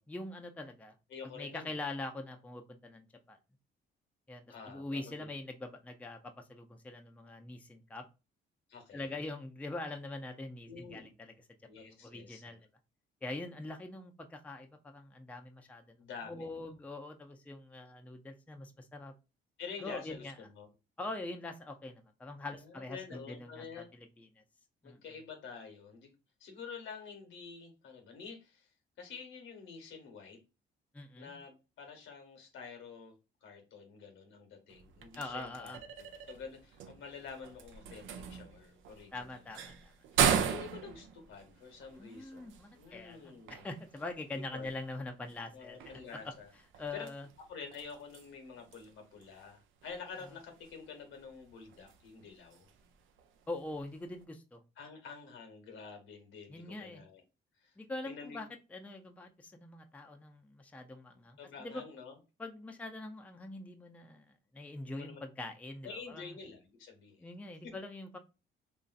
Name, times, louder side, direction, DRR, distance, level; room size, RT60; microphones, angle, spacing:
voice 1, 0.1-0.9 1.3-3.4 4.3-8.0 8.9-11.3 12.0-12.6 13.2-16.0 16.2-19.1 19.8-20.3 21.0-24.4 24.8-25.0 30.9-31.3 35.2-35.8 39.1-39.9 42.0-46.0 46.8-47.3 53.5-54.6 56.5-57.0 57.8-61.8 62.4-64.2 64.5-66.4 67.2-68.2, left 2 dB, 5° left, 4 dB, 0.4 m, -43 dB
voice 2, 1.1-1.7 4.5-5.3 8.7-9.1 10.7-11.1 11.7-12.6 16.0-16.5 19.6-20.7 22.5-23.9 24.8-26.1 26.4-28.7 29.0-30.4 31.2-33.1 33.4-35.7 36.0-39.5 40.1-43.7 44.3-44.7 45.5-46.5 46.9-47.1 47.5-52.7 54.8-57.2 57.6-57.7 58.0-58.4 61.4-62.2 64.8-65.2 65.8-67.2 67.6-67.7, left 5 dB, 80° left, 5 dB, 1.0 m, -48 dB
sound 1, 34.7-54.2, right 8 dB, 80° right, 0.5 m, -39 dB
3.0 x 2.5 x 2.4 m, 0.29 s
cardioid pair, 90°, 20 cm